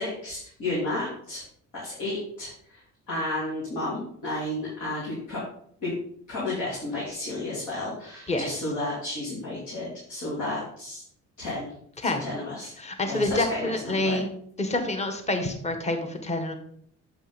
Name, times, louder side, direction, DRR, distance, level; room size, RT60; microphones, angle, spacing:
voice 1, 0.0-1.4 1.7-2.8 3.1-5.4 5.8-5.9 6.3-11.0 11.4-11.7 12.0-12.7 13.1-14.2, left 2 dB, 80° left, -7 dB, 3.0 m, -32 dB
voice 2, 12.8-14.3 14.6-16.6, left 2 dB, 20° left, 5 dB, 1.2 m, -27 dB
7.8 x 5.2 x 4.0 m, 0.66 s
cardioid pair, 90°, 30 cm